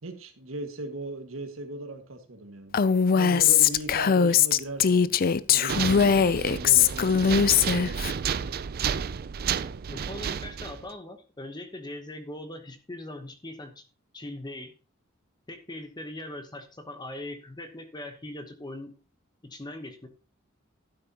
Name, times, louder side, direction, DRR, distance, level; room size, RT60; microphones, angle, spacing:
voice 1, 0.0-2.8 3.1-5.2 5.5-8.2, right 1 dB, 80° right, 5 dB, 1.8 m, -38 dB
Female speech woman speaking, 2.7-8.1, left 7 dB, 45° left, 0.5 m, -21 dB
sound 1, 5.7-10.9, right 7 dB, 50° right, 0.4 m, -31 dB
voice 2, 9.9-13.8 14.1-14.7 15.5-18.9 19.4-20.1, left 1 dB, 20° left, 8 dB, 1.0 m, -40 dB
12.0 x 9.6 x 2.9 m, 0.34 s
head